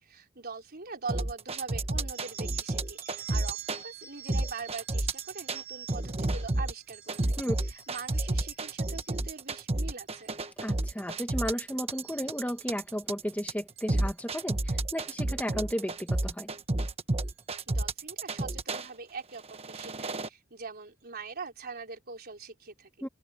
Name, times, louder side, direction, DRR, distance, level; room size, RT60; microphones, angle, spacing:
voice 1, 0.0-7.3 7.7-10.3 17.7-22.9, right 4 dB, 50° right, 4.2 m, -42 dB
sound 1, 1.1-3.8 4.3-5.6 5.9-18.9 19.4-20.3, right 2 dB, 30° right, 1.2 m, -31 dB
sound 2, 2.1-9.4 9.9-10.3 10.6-11.1 11.4-12.8 13.8-14.0 14.9-15.1 16.1-16.2 16.6-16.7 17.2-17.4, right 11 dB, 70° right, 6.3 m, -47 dB
voice 2, 10.6-16.5 23.0-23.1, equal, 10° left, 1.6 m, -34 dB
head